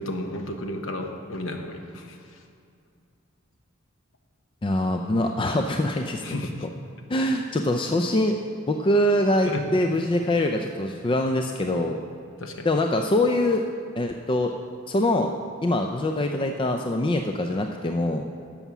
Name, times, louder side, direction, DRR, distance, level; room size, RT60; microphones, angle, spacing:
voice 1, 0.0-2.4 6.2-6.7 9.5-9.7 12.4-12.7, left 1 dB, 75° left, 4 dB, 1.0 m, -33 dB
voice 2, 4.6-6.4 6.6-6.7 7.1-8.4 8.7-12.0 12.6-13.6 14.0-14.5 14.9-15.3 15.6-18.3, left 1 dB, 25° left, 4 dB, 0.4 m, -24 dB
11.0 x 7.1 x 6.0 m, 2.4 s
head